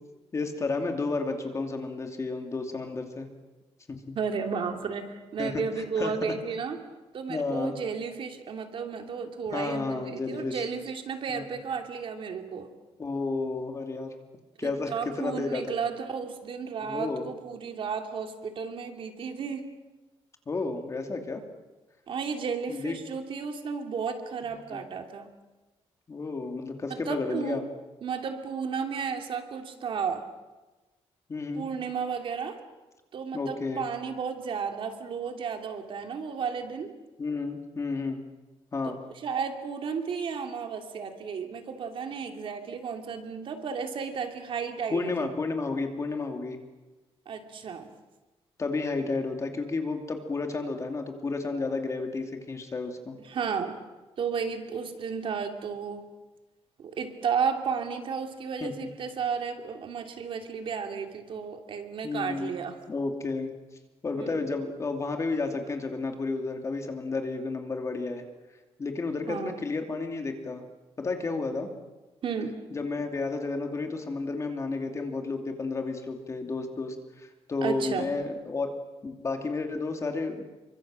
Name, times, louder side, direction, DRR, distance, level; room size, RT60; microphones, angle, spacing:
voice 1, 0.3-3.3 3.9-4.0 5.4-6.3 7.3-7.8 9.5-10.6 11.3-11.5 13.0-14.1 14.6-15.7 16.8-17.3 20.5-21.4 22.7-22.9 24.7-24.8 26.1-27.6 31.3-31.7 33.3-33.8 37.2-38.2 38.7-39.0 44.9-46.6 48.6-53.2 58.6-58.9 62.0-62.6 62.9-63.5 64.0-68.2 68.8-70.6 71.0-71.7 72.7-78.7 79.0-80.4, left 3 dB, 30° left, 4 dB, 2.7 m, -32 dB
voice 2, 4.1-6.8 7.1-12.7 14.6-19.7 22.1-25.3 26.9-27.6 28.0-30.2 31.5-32.6 33.1-36.9 38.9-39.0 39.2-45.3 47.3-47.8 53.2-53.8 54.2-56.1 56.8-62.8 64.2-64.5 69.3-69.6 72.2-72.6 77.6-78.1, right 6 dB, 55° right, 5 dB, 2.8 m, -33 dB
28.0 x 24.0 x 7.6 m, 1.1 s
wide cardioid pair, 160°, 11 cm